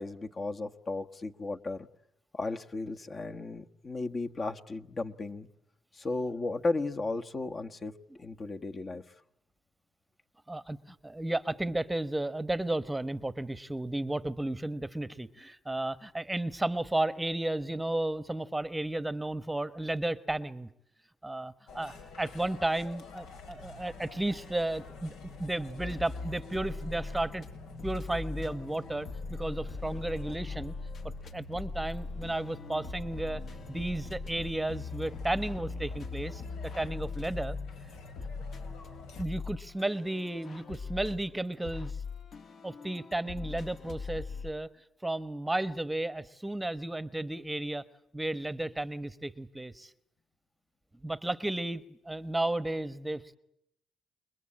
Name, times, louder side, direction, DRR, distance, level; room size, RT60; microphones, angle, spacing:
voice 1, 0.0-1.9 2.3-5.5 5.9-7.9 8.2-9.0, left 3 dB, 35° left, 6 dB, 1.4 m, -35 dB
voice 2, 10.5-20.7 21.2-25.1 25.4-27.4 27.8-30.7 31.3-33.4 33.7-37.6 39.2-42.0 42.6-44.7 45.0-47.8 48.1-49.9 51.0-53.4, right 1 dB, 10° right, 16 dB, 1.1 m, -33 dB
sound 1, 21.7-39.2, left 4 dB, 85° left, 4.3 m, -48 dB
sound 2, 25.8-27.5 27.8-44.5, left 4 dB, 55° left, 2.3 m, -41 dB
29.0 x 22.0 x 8.7 m, 0.79 s
cardioid pair, 90°, 0 cm